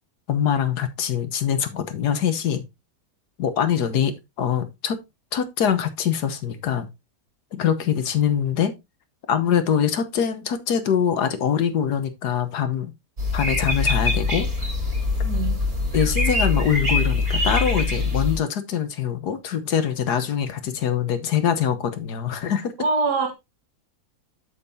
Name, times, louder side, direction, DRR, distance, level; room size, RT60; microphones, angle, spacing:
voice 1, 0.3-2.6 3.4-5.0 5.3-6.9 7.5-8.7 9.3-12.9 13.3-14.7 15.9-22.7, left 8 dB, 80° left, 1.6 m, -23 dB
sound 1, 13.2-18.4, left 3 dB, 55° right, 3.3 m, -23 dB
voice 2, 15.2-15.6 22.8-23.3, right 4 dB, 85° right, 2.1 m, -23 dB
8.3 x 7.3 x 2.7 m
omnidirectional pair, 1.7 m